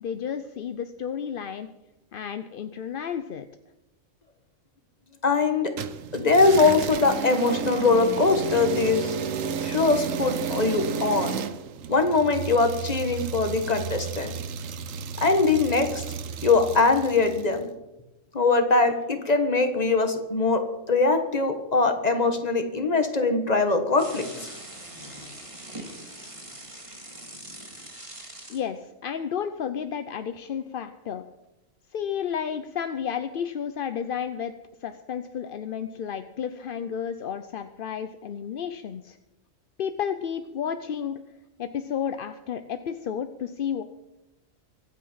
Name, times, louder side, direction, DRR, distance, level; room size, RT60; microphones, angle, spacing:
voice 1, 0.0-1.7 2.1-3.5 28.5-31.2 31.9-34.5 34.8-39.2 39.8-41.2 41.6-43.8, left 8 dB, 55° left, 10 dB, 0.7 m, -32 dB
voice 2, 5.2-5.7 6.1-9.1 9.6-11.4 11.9-14.4 15.2-16.0 16.4-17.7 18.3-24.5, left 3 dB, 30° left, 6 dB, 1.6 m, -22 dB
sound 1, 5.8-17.5, right 7 dB, 75° right, 1.2 m, -32 dB
sound 2, 24.0-28.6, right 1 dB, 25° right, 2.3 m, -42 dB
24.0 x 8.4 x 5.6 m, 0.98 s
omnidirectional pair, 1.4 m